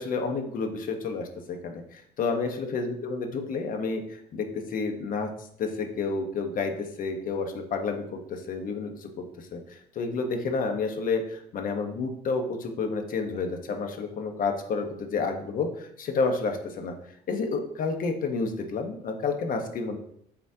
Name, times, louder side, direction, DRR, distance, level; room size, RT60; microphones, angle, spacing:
voice 1, 0.0-5.3 5.6-17.0 17.3-20.0, left 4 dB, 55° left, 4 dB, 1.3 m, -30 dB
11.5 x 4.2 x 2.9 m, 0.70 s
cardioid pair, 110°, 17 cm